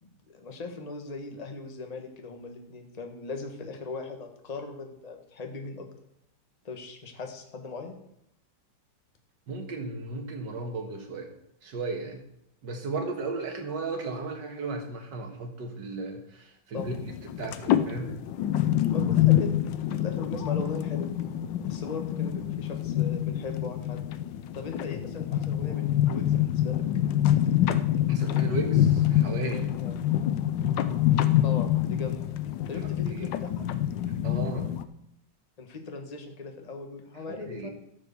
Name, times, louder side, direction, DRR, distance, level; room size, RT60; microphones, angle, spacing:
voice 1, 0.0-5.9 6.6-7.9 16.7-17.0 18.9-21.1 21.7-24.0 24.5-26.8 29.8-29.9 31.1-32.2 32.7-33.7 35.6-37.7, left 3 dB, 25° left, 4 dB, 1.2 m, -39 dB
voice 2, 9.5-11.3 11.6-12.2 12.6-16.9 17.4-18.1 28.1-29.7 33.1-33.3 34.2-34.7 37.3-37.7, right 3 dB, 75° right, 3 dB, 2.2 m, -35 dB
sound 1, 16.8-34.8, left 11 dB, 85° left, 1.4 m, -26 dB
13.5 x 4.8 x 6.9 m, 0.79 s
omnidirectional pair, 1.9 m